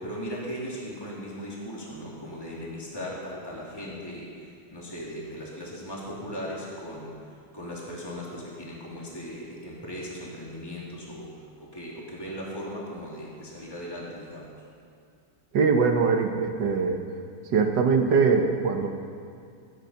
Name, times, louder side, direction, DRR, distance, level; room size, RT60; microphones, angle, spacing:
voice 1, 0.0-14.5, equal, 10° left, -5 dB, 3.1 m, -38 dB
voice 2, 15.5-17.0 17.5-18.9, right 5 dB, 60° right, 5 dB, 1.7 m, -22 dB
21.5 x 9.7 x 5.8 m, 2.4 s
omnidirectional pair, 2.3 m